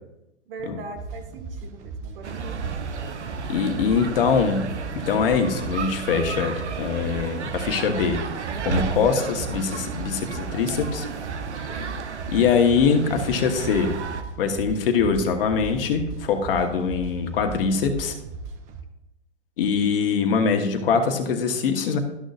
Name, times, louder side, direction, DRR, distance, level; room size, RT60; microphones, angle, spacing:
voice 1, 0.5-2.6, right 4 dB, 55° right, 4 dB, 1.7 m, -40 dB
sound 1, 0.9-18.8, right 4 dB, 20° right, 0.6 m, -37 dB
sound 2, 2.2-14.2, right 6 dB, 80° right, 0.9 m, -33 dB
voice 2, 3.5-8.2 8.6-11.1 12.3-13.9 14.4-18.1 19.6-22.0, left 5 dB, 50° left, 5 dB, 1.3 m, -23 dB
12.5 x 6.3 x 2.5 m, 0.90 s
hypercardioid pair, 125°, 35 cm